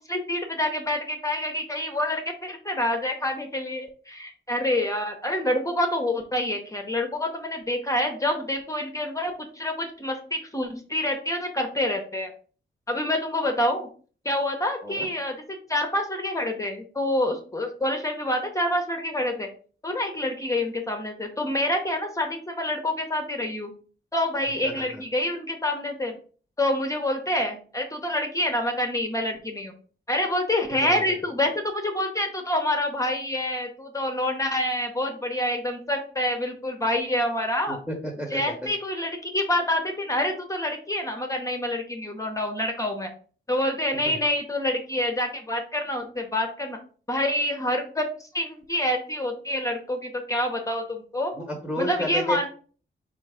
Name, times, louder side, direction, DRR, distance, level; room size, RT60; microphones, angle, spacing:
voice 1, 0.1-12.3 12.9-13.9 14.2-19.5 19.8-23.7 24.1-26.2 26.6-29.7 30.1-37.8 38.3-43.1 43.5-46.8 47.1-51.3 51.8-52.5, left 1 dB, 15° left, 4 dB, 0.6 m, -27 dB
voice 2, 24.6-25.0 30.8-31.1 37.7-38.4 44.0-44.2 51.3-52.5, equal, 5° right, 1 dB, 1.0 m, -31 dB
4.3 x 2.4 x 4.8 m, 0.42 s
wide cardioid pair, 155°, 21 cm